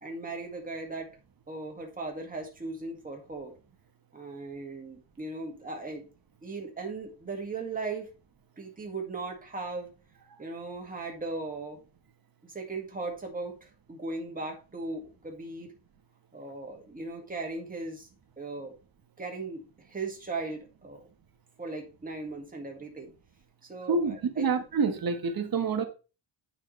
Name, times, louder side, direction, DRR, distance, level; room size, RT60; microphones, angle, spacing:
voice 1, 0.0-1.1 1.5-3.6 4.1-6.1 6.4-8.1 8.6-9.9 10.4-11.8 12.4-15.7 16.3-18.1 18.4-18.8 19.2-21.1 21.6-23.1 23.6-24.5, right 3 dB, 20° right, 1.9 m, -38 dB
voice 2, 23.9-25.8, right 4 dB, 50° right, 1.3 m, -27 dB
9.1 x 5.9 x 3.2 m
wide cardioid pair, 165°, 45 cm